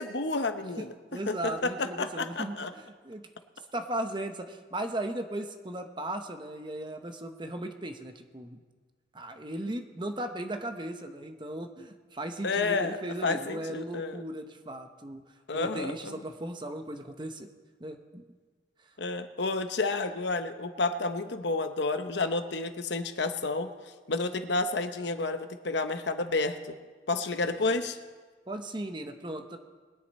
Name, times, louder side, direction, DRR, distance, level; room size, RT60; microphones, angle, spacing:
voice 1, 0.0-0.9 1.3-2.7 12.4-13.0 13.2-14.2 15.5-16.1 19.0-23.7 24.1-26.8 27.1-28.0, left 3 dB, 65° left, 9 dB, 0.8 m, -30 dB
voice 2, 1.1-3.3 3.7-8.6 9.1-15.2 15.5-17.5 17.8-18.2 27.4-27.5 28.5-29.6, right 1 dB, 25° right, 6 dB, 0.9 m, -37 dB
21.5 x 10.0 x 4.2 m, 1.4 s
head